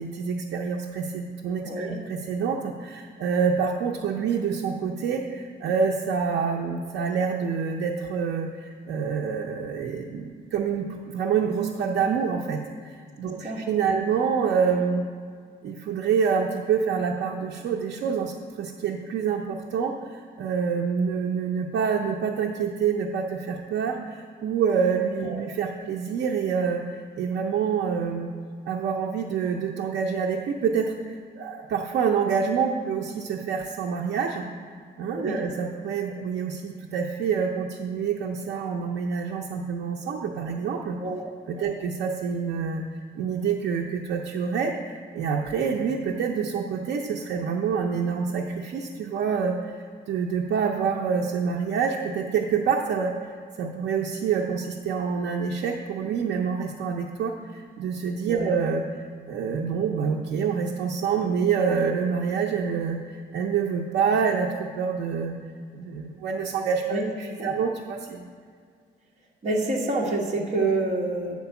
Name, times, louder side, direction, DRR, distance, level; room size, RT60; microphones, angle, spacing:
voice 1, 0.0-15.0 15.6-28.3 28.7-34.4 35.0-41.0 41.5-42.8 43.1-49.5 50.1-58.8 59.3-65.3 65.7-68.3, right 6 dB, 80° right, -1 dB, 0.7 m, -27 dB
voice 2, 1.6-2.0 13.2-14.0 25.2-25.4 35.1-35.4 41.0-41.2 41.6-41.7 58.3-58.5 66.9-67.1 67.4-67.5 69.4-71.3, right 2 dB, 40° right, -3 dB, 1.5 m, -28 dB
9.4 x 4.6 x 6.9 m, 2.1 s
cardioid pair, 150°, 18 cm